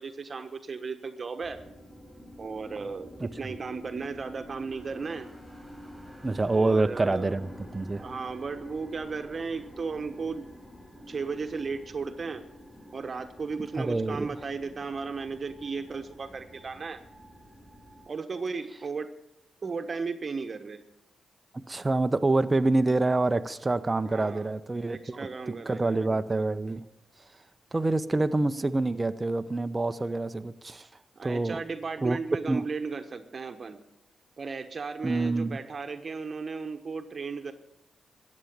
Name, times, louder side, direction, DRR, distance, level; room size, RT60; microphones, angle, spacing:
voice 1, 0.0-1.6 2.4-5.3 6.5-7.3 8.0-10.5 11.1-12.4 12.9-17.0 18.1-19.1 19.6-20.8 24.1-24.5 24.9-26.0 31.2-33.8 34.4-37.5, right 4 dB, 50° right, 8 dB, 1.3 m, -35 dB
sound 1, 1.4-18.1, left 1 dB, ahead, 6.4 m, -48 dB
voice 2, 6.2-8.1 13.8-14.3 21.7-26.8 27.7-30.9 31.2-31.6 32.0-32.2 32.5-32.7 35.0-35.6, right 2 dB, 30° right, 10 dB, 0.8 m, -27 dB
14.5 x 8.6 x 8.8 m, 0.83 s
supercardioid pair, 45°, 0 cm